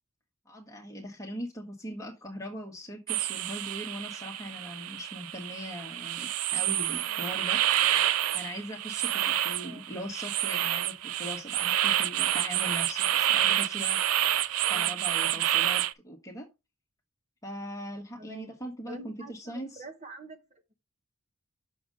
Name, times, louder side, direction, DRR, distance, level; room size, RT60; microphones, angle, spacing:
voice 1, 0.5-7.6 8.3-14.0 14.4-16.4 17.4-19.8, equal, 15° left, 1.3 m, -40 dB
sound 1, 3.1-15.9, right 12 dB, 80° right, 0.5 m, -28 dB
voice 2, 6.9-7.3 9.5-9.9 14.6-15.4 18.2-18.5 18.8-20.8, right 2 dB, 30° right, 1.2 m, -47 dB
6.9 x 6.4 x 3.8 m
head